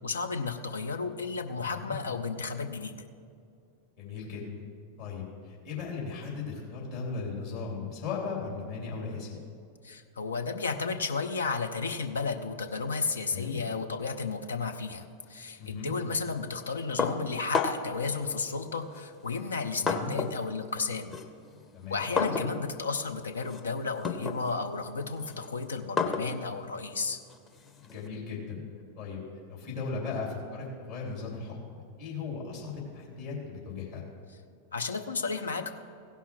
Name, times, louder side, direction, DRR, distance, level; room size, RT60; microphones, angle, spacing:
voice 1, 0.0-3.0 9.8-21.2 21.9-27.2 34.7-35.7, left 4 dB, 70° left, 6 dB, 0.6 m, -33 dB
voice 2, 1.6-2.0 4.0-4.5 5.0-9.4 13.3-13.6 15.6-15.9 19.8-20.1 21.7-22.1 27.8-28.6 28.9-29.2 29.5-34.0, left 4 dB, 55° left, -5 dB, 2.8 m, -37 dB
sound 1, 17.0-18.0 18.9-20.5 20.8-28.1, left 4 dB, 20° left, 0.8 m, -34 dB
16.0 x 5.6 x 4.6 m, 2.4 s
figure-of-eight pair, 90°, 0 cm